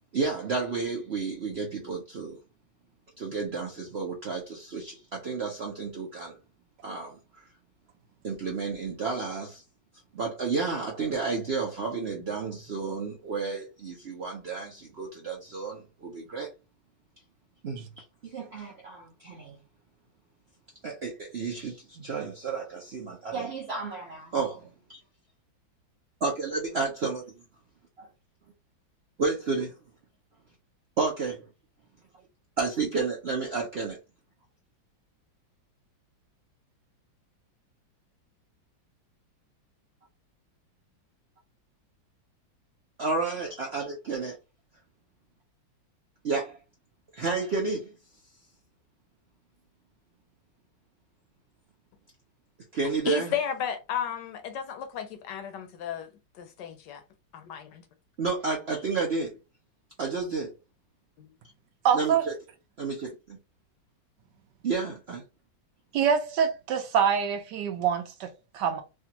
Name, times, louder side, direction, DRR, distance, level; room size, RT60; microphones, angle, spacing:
voice 1, 0.1-2.4 3.2-6.4 6.8-7.5 8.2-9.6 10.1-16.5 17.6-19.6 20.8-25.0 26.2-27.2 28.0-28.1 29.2-29.7 31.0-31.4 32.6-34.0 43.0-44.4 46.2-46.6 47.1-48.0 52.7-53.3 58.2-59.4 60.0-60.5 61.9-62.3 62.8-63.4 64.6-65.2, right 4 dB, 90° right, 0.5 m, -31 dB
voice 2, 53.1-56.1 56.3-57.0 57.3-57.8 61.2-61.3, left 8 dB, 70° left, 1.1 m, -33 dB
voice 3, 61.8-62.2 65.9-68.8, right 7 dB, 70° right, 1.1 m, -25 dB
3.4 x 2.4 x 2.8 m
omnidirectional pair, 2.1 m